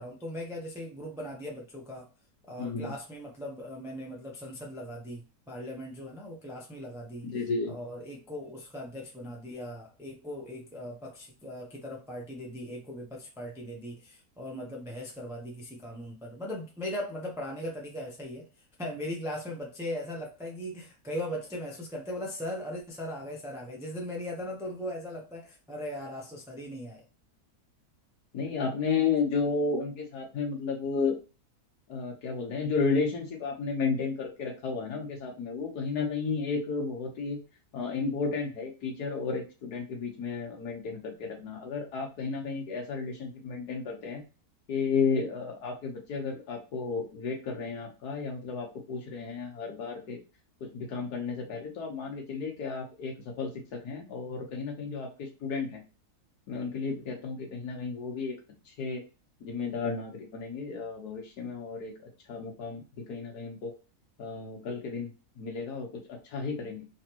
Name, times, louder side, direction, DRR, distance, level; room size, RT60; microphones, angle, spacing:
voice 1, 0.0-2.1 2.4-7.3 7.7-18.5 18.8-27.0, left 1 dB, 5° right, -1 dB, 0.5 m, -39 dB
voice 2, 2.6-2.9 7.2-7.8 28.3-31.2 31.9-37.4 37.7-44.2 44.7-50.2 50.6-55.8 56.5-58.4 58.7-59.0 59.4-62.0 62.3-63.7 64.2-66.9, left 4 dB, 80° left, 2 dB, 1.7 m, -33 dB
3.5 x 3.2 x 2.9 m, 0.32 s
omnidirectional pair, 1.7 m